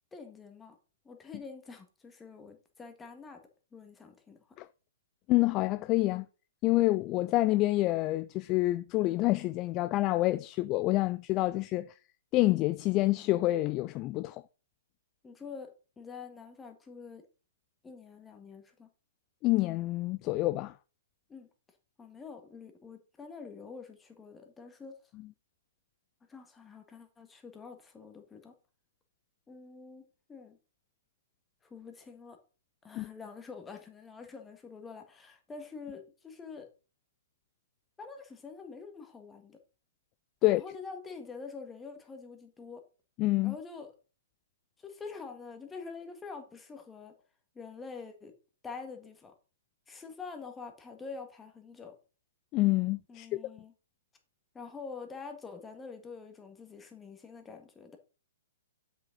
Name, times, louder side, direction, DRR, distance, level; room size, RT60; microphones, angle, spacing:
voice 1, 0.1-0.8 1.0-3.4 3.7-4.6 15.2-17.2 17.8-18.9 21.3-21.5 22.0-25.0 26.3-28.5 29.5-30.6 31.7-32.4 32.8-36.7 38.0-39.6 40.6-42.8 43.4-43.9 44.8-47.1 47.5-48.3 48.6-49.3 49.9-52.0 53.1-53.7 54.5-58.0, left 5 dB, 10° left, 1.6 m, -46 dB
voice 2, 5.3-6.3 6.6-11.9 12.3-14.4 19.4-20.7 33.0-33.1 40.4-40.6 43.2-43.5 52.5-53.4, left 18 dB, 30° left, 0.3 m, -27 dB
7.5 x 6.4 x 3.9 m
hypercardioid pair, 125°, 0 cm